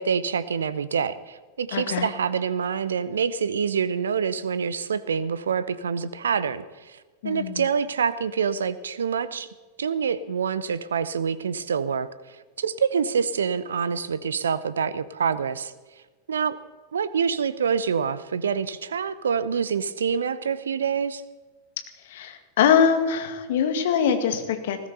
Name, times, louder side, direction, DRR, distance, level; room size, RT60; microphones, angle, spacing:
voice 1, 0.0-7.0 7.2-9.5 9.8-15.7 16.3-16.6 16.9-21.2, right 6 dB, 70° right, 16 dB, 0.7 m, -26 dB
voice 2, 1.7-2.1 7.2-7.6 22.1-24.8, left 7 dB, 55° left, 7 dB, 2.1 m, -23 dB
19.5 x 16.0 x 4.2 m, 1.2 s
figure-of-eight pair, 90°, 0 cm